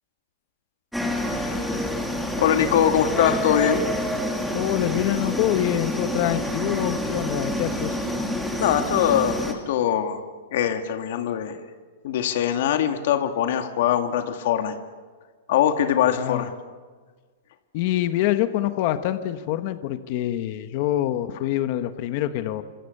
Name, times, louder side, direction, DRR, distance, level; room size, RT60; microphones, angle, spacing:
sound 1, 0.9-9.5, left 1 dB, ahead, 2.3 m, -28 dB
voice 1, 1.3-1.7 2.4-3.9 8.6-10.2 10.5-11.6 12.0-14.7 15.5-16.5, left 9 dB, 50° left, 6 dB, 2.3 m, -22 dB
voice 2, 4.5-8.1 16.1-16.5 17.7-22.6, left 13 dB, 35° left, 10 dB, 1.3 m, -25 dB
29.5 x 26.0 x 6.8 m, 1.5 s
supercardioid pair, 175°, 0 cm